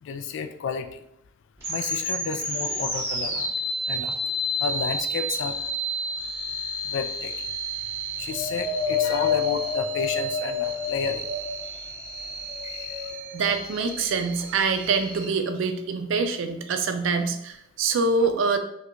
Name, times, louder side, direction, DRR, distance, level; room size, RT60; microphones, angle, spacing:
voice 1, 0.0-1.0 1.7-3.5 3.9-4.1 4.6-5.6 6.8-7.3 8.2-11.2 18.2-18.3, left 6 dB, 65° left, 8 dB, 0.3 m, -31 dB
sound 1, 1.6-15.3, right 1 dB, 15° right, 1.0 m, -32 dB
Wind, 8.3-11.8 12.4-13.4 14.2-14.3, left 6 dB, 45° left, 1.0 m, -29 dB
voice 2, 12.6-13.0 13.3-18.6, right 4 dB, 70° right, 7 dB, 0.4 m, -25 dB
4.4 x 2.3 x 2.5 m, 0.77 s
head